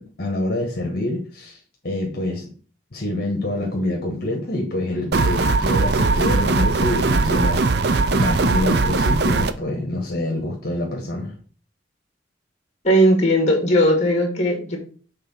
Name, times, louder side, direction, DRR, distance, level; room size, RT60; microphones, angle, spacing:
voice 1, 0.2-1.6 1.8-2.5 2.9-11.4, left 1 dB, 55° left, 1 dB, 1.4 m, -26 dB
sound 1, 5.1-9.5, right 3 dB, 60° right, 0.5 m, -19 dB
voice 2, 12.8-14.8, equal, 35° left, 3 dB, 1.8 m, -17 dB
6.8 x 3.6 x 5.5 m, 0.41 s
head